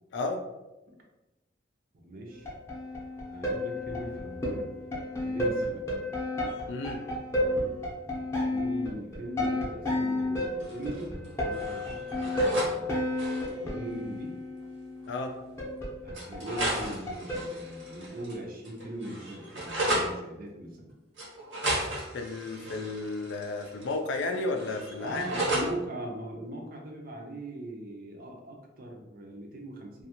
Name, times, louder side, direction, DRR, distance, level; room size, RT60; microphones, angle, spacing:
voice 1, 0.1-0.4 6.7-7.0 15.1-15.4 22.1-25.4, left 3 dB, 70° left, 4 dB, 0.4 m, -33 dB
voice 2, 1.9-2.5 3.3-4.8 5.2-5.9 8.5-13.0 13.5-14.4 16.0-20.9 25.0-30.1, right 1 dB, 50° right, 1 dB, 0.5 m, -40 dB
sound 1, 2.4-18.1, left 1 dB, 15° left, 0.7 m, -32 dB
sound 2, 10.6-11.3 11.5-12.7 13.0-13.5 14.6-14.7 15.0-15.1 16.1-18.4 18.7-20.1 21.2-24.0 24.2-25.7, right 1 dB, 85° right, 1.1 m, -34 dB
2.5 x 2.3 x 2.8 m, 1.0 s
head